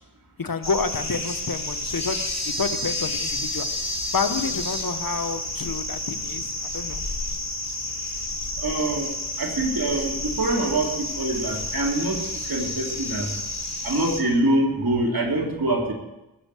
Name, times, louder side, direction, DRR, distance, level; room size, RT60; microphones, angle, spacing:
voice 1, 0.4-2.3 2.6-3.7 4.1-7.0, left 4 dB, 60° left, 8 dB, 1.2 m, -29 dB
sound 1, 0.6-14.2, left 2 dB, 40° left, 2.5 m, -30 dB
voice 2, 8.6-13.3 13.8-15.9, right 1 dB, 60° right, 0 dB, 3.2 m, -25 dB
17.0 x 6.6 x 8.3 m, 0.97 s
cardioid pair, 50°, 39 cm